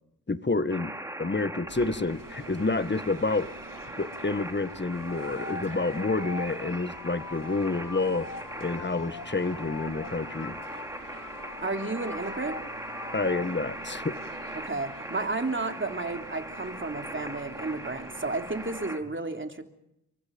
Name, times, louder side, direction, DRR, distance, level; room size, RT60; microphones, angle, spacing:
voice 1, 0.3-0.9 1.2-3.5 4.0-8.3 8.6-10.6 13.1-14.2, left 3 dB, 30° left, 12 dB, 1.6 m, -29 dB
sound 1, 0.7-19.0, right 1 dB, 10° right, 3.8 m, -40 dB
sound 2, 1.7-18.9, right 5 dB, 60° right, 2.4 m, -48 dB
sound 3, 5.1-13.5, left 4 dB, 60° left, 2.3 m, -42 dB
voice 2, 11.6-12.6 14.5-19.6, right 3 dB, 30° right, 5 dB, 3.3 m, -32 dB
28.5 x 24.0 x 5.4 m, 0.81 s
cardioid pair, 55°, 37 cm